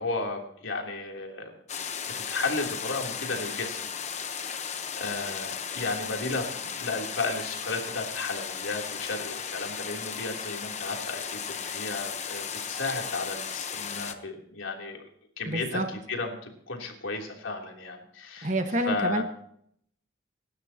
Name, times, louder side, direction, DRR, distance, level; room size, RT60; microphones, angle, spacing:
voice 1, 0.0-1.5 2.1-15.0 15.4-18.5 18.9-19.2, left 3 dB, 80° left, 1 dB, 3.3 m, -34 dB
sound 1, 1.7-14.1, left 7 dB, 35° left, 1.0 m, -35 dB
voice 2, 15.5-15.9 18.4-19.2, right 1 dB, 35° right, 6 dB, 1.4 m, -28 dB
26.0 x 12.5 x 2.9 m, 0.69 s
head